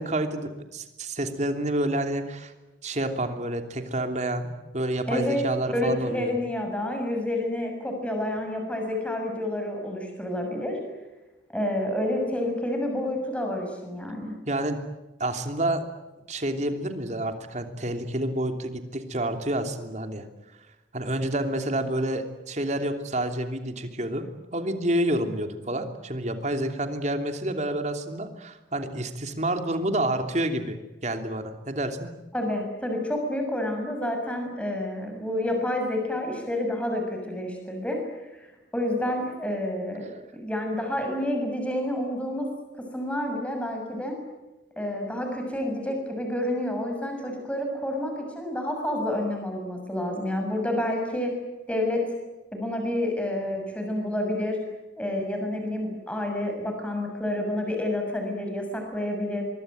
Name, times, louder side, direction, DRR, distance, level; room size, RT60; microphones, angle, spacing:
voice 1, 0.0-2.5 2.8-4.5 4.7-6.4 14.4-14.8 15.2-15.8 16.3-20.2 20.9-24.2 24.5-30.8 31.0-32.1, right 1 dB, 40° right, 6 dB, 3.1 m, -28 dB
voice 2, 5.1-5.4 5.7-10.8 11.5-14.3 32.3-40.1 40.3-42.5 42.9-44.2 44.8-51.3 51.7-52.1 52.5-54.6 55.0-59.4, left 1 dB, 5° left, 3 dB, 6.7 m, -29 dB
24.0 x 24.0 x 9.3 m, 1.1 s
head